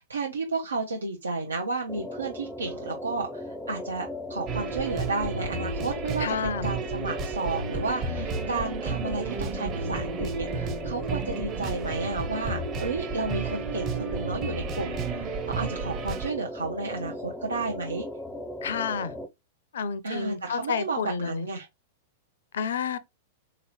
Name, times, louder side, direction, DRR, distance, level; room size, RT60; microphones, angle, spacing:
voice 1, 0.0-18.0 20.0-21.7, right 3 dB, 90° right, 0.6 m, -32 dB
sound 1, 1.9-19.3, left 1 dB, ahead, 0.5 m, -38 dB
sound 2, 4.5-16.3, right 4 dB, 35° right, 0.8 m, -32 dB
voice 2, 6.2-6.7 18.6-19.1 19.7-21.5 22.5-23.0, left 6 dB, 70° left, 0.4 m, -30 dB
3.9 x 2.9 x 3.0 m
hypercardioid pair, 105°, 0 cm